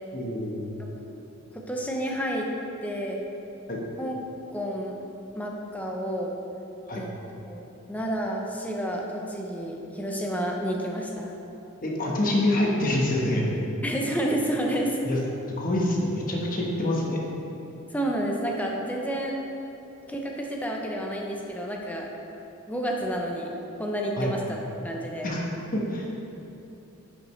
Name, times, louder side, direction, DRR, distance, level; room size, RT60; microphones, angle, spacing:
voice 1, 0.1-0.8 3.7-3.8 6.9-7.0 11.8-13.4 15.0-15.2 15.6-17.2 24.2-24.3 25.2-26.1, left 1 dB, 40° left, -2 dB, 1.1 m, -26 dB
voice 2, 1.5-2.5 2.8-3.2 4.0-4.2 4.5-4.9 5.4-6.3 7.0-7.1 7.5-7.6 7.9-11.3 13.8-15.0 17.9-19.4 20.1-22.1 22.7-24.6 24.8-25.3, right 1 dB, 5° left, -1 dB, 0.7 m, -30 dB
10.5 x 5.2 x 3.2 m, 3.0 s
head